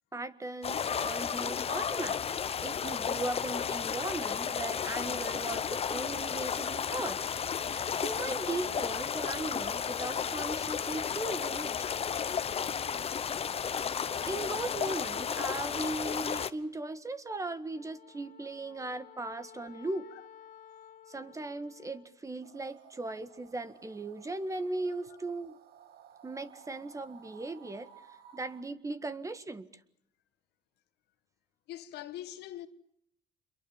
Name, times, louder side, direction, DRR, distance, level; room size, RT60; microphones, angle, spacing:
voice 1, 0.1-7.2 7.6-11.7 14.3-20.1 21.1-25.6 26.2-27.9 28.3-29.7, right 2 dB, 20° right, 1.8 m, -38 dB
sound 1, 0.6-16.5, left 7 dB, 35° left, 1.1 m, -33 dB
Wind instrument woodwind instrument, 17.7-22.1, left 9 dB, 50° left, 2.9 m, -54 dB
sound 2, 22.4-28.6, right 8 dB, 70° right, 2.1 m, -56 dB
voice 2, 31.7-32.7, left 13 dB, 80° left, 1.8 m, -43 dB
27.5 x 22.5 x 7.4 m
cardioid pair, 110°, 17 cm